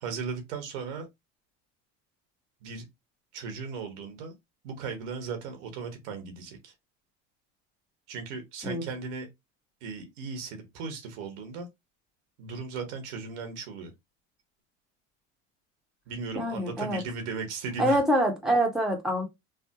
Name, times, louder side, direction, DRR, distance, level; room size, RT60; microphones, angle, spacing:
voice 1, 0.0-1.1 2.6-2.8 3.3-4.3 4.6-6.7 8.1-9.3 9.8-11.7 12.4-13.9 16.1-18.0, right 5 dB, 85° right, 1.1 m, -37 dB
voice 2, 16.3-17.0 17.8-19.2, right 1 dB, ahead, 1.0 m, -25 dB
3.4 x 2.1 x 2.8 m
supercardioid pair, 100°, 34 cm